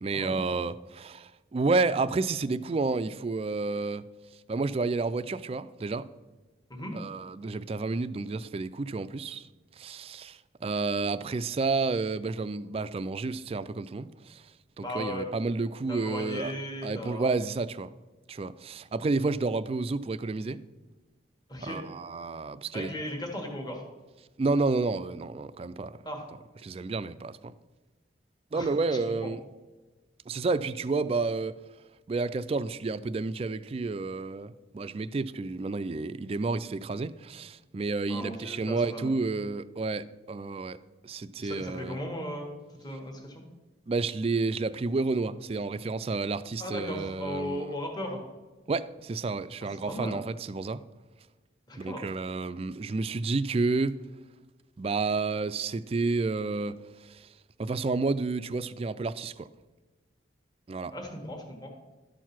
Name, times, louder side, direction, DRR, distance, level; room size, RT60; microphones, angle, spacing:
voice 1, 0.0-4.0 4.5-6.1 6.9-9.4 9.8-14.4 14.8-16.5 16.8-17.9 18.3-20.6 21.6-22.9 24.4-25.9 26.6-27.5 28.5-29.4 30.3-31.6 32.1-40.8 41.0-42.0 43.9-47.7 48.7-50.8 51.8-54.0 54.8-56.8 57.1-57.2 57.6-59.5 60.7-60.9, right 3 dB, 35° right, 0.3 m, -30 dB
voice 2, 14.8-15.3 15.9-17.3 21.5-21.8 22.7-23.8 26.0-26.2 28.5-28.7 29.2-29.3 38.1-39.1 41.4-43.4 46.6-48.2 49.9-50.2 51.7-52.1 60.9-61.7, equal, 20° left, 1.4 m, -37 dB
12.0 x 4.6 x 5.9 m
head